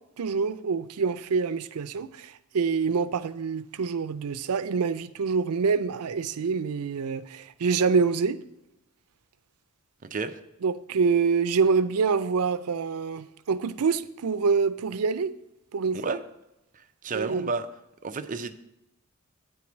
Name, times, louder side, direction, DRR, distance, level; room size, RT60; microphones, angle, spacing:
voice 1, 0.2-8.4 10.6-15.3 15.7-16.1 17.1-17.5, right 5 dB, 90° right, 0.5 m, -26 dB
voice 2, 10.0-10.4 15.9-16.2 16.7-17.7 18.0-18.6, right 4 dB, 35° right, 0.6 m, -32 dB
9.2 x 4.7 x 7.1 m
head